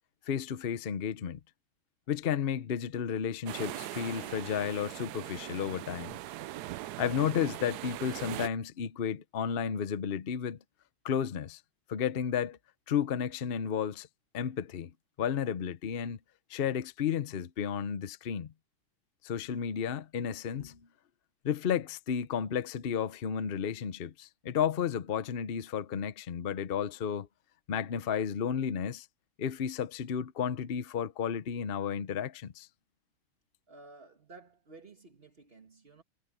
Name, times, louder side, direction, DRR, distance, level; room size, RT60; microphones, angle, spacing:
voice 1, 0.3-1.4 2.1-6.1 7.0-10.6 11.0-11.6 11.9-12.6 12.9-14.1 14.3-14.9 15.2-16.2 16.5-18.5 19.2-20.8 21.4-27.3 27.7-29.1 29.4-32.7, left 8 dB, 75° left, 0.5 m, -32 dB
sound 1, 3.5-8.5, right 15 dB, 85° right, 0.8 m, -40 dB
voice 2, 33.7-36.0, right 3 dB, 30° right, 1.8 m, -53 dB
omnidirectional pair, 2.3 m